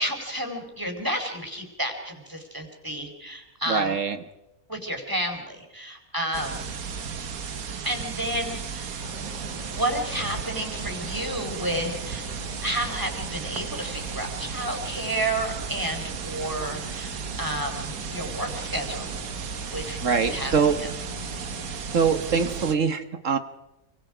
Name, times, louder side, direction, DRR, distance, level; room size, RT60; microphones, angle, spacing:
voice 1, 0.0-4.0 4.7-6.7 7.8-9.0 9.8-12.2 12.6-19.2 19.7-20.0 20.3-20.9, right 1 dB, 15° right, 3 dB, 4.6 m, -31 dB
voice 2, 3.7-4.2 20.0-20.7 21.9-23.4, right 6 dB, 60° right, 9 dB, 1.5 m, -23 dB
sound 1, 6.3-22.7, right 6 dB, 80° right, 1.7 m, -34 dB
sound 2, 9.0-22.7, left 2 dB, 65° left, 6.5 m, -43 dB
28.5 x 24.5 x 5.1 m, 0.96 s
omnidirectional pair, 1.5 m